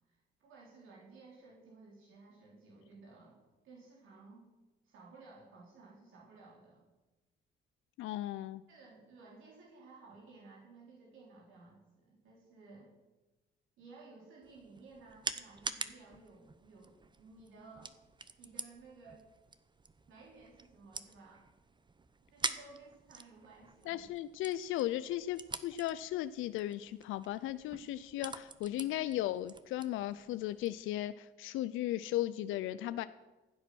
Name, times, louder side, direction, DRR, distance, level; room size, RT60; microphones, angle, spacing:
voice 1, 0.1-3.4 3.6-4.5 4.8-6.8 8.7-12.9 13.8-17.9 18.4-19.2 20.1-21.4 22.3-24.1, right 3 dB, 85° right, -3 dB, 3.5 m, -56 dB
voice 2, 8.0-8.6 23.9-33.0, left 14 dB, 85° left, 13 dB, 0.5 m, -36 dB
sound 1, 14.4-30.8, right 4 dB, 25° right, 0.9 m, -46 dB
15.5 x 8.1 x 6.2 m, 1.1 s
cardioid pair, 90°, 20 cm